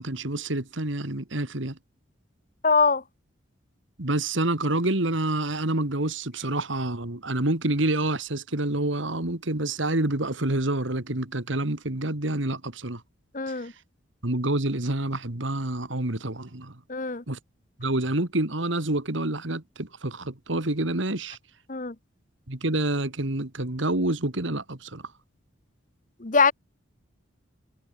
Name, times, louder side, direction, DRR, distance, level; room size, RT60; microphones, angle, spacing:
voice 1, 0.0-1.8 4.0-13.0 14.2-16.7 17.3-17.4 17.8-21.4 22.5-25.0, right 2 dB, 70° right, 2.3 m, -27 dB
voice 2, 2.6-3.0 13.3-13.7 16.9-17.2 21.7-21.9 26.2-26.5, left 4 dB, 40° left, 1.1 m, -22 dB
head